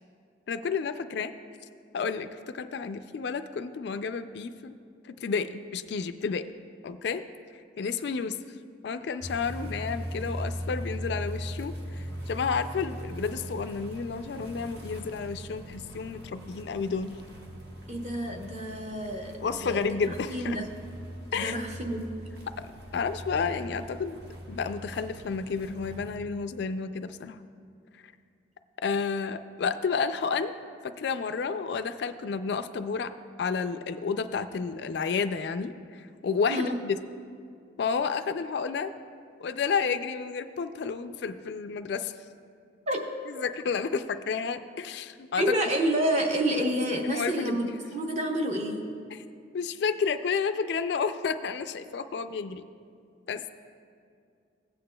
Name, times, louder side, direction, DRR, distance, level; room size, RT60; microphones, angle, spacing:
voice 1, 0.5-1.3 1.9-4.8 5.0-6.5 6.8-7.2 7.8-8.4 8.8-17.2 19.4-20.6 21.3-21.6 22.9-24.2 24.5-27.4 28.8-30.5 30.8-33.1 33.4-37.0 37.8-38.9 39.4-42.1 43.3-45.4 47.0-47.6 49.1-49.2 49.5-52.6 53.3-53.5, left 5 dB, 60° left, 10 dB, 0.3 m, -31 dB
sound 1, 9.2-26.1, equal, 55° right, 1.1 m, -40 dB
voice 2, 17.9-19.3 19.6-20.0 20.3-20.7 21.3-22.1 36.5-36.7 42.9-43.0 43.4-43.5 45.4-48.8, right 1 dB, 35° right, 1 dB, 0.9 m, -28 dB
15.5 x 8.6 x 2.2 m, 2.4 s
head